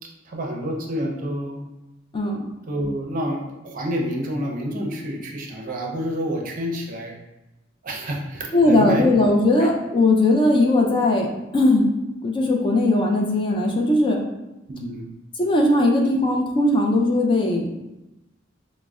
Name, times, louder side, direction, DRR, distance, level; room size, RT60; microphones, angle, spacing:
voice 1, 0.2-1.7 2.7-7.1 7.8-9.1 9.6-9.7 14.7-15.1, equal, 45° right, 0 dB, 0.6 m, -28 dB
voice 2, 8.5-11.3 11.5-11.9 12.2-14.2 15.4-17.7, left 2 dB, 25° left, 0 dB, 0.4 m, -19 dB
5.1 x 2.0 x 2.3 m, 0.99 s
head